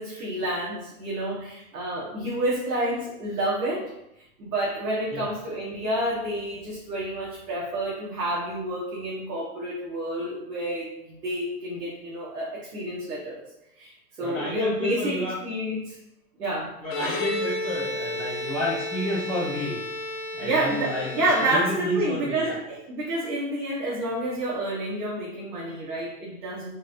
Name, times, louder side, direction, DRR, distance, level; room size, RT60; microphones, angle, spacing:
voice 1, 0.0-3.9 4.4-13.4 13.8-13.9 14.2-16.0 16.4-16.7 20.4-26.7, right 1 dB, 90° right, -7 dB, 1.5 m, -29 dB
voice 2, 14.2-15.3 16.8-19.8 20.3-21.1 21.4-22.6, equal, 5° left, -10 dB, 0.9 m, -30 dB
Bowed string instrument, 16.8-22.1, left 1 dB, 20° left, 0.4 m, -32 dB
4.2 x 3.5 x 2.6 m, 0.82 s
hypercardioid pair, 130°, 45 cm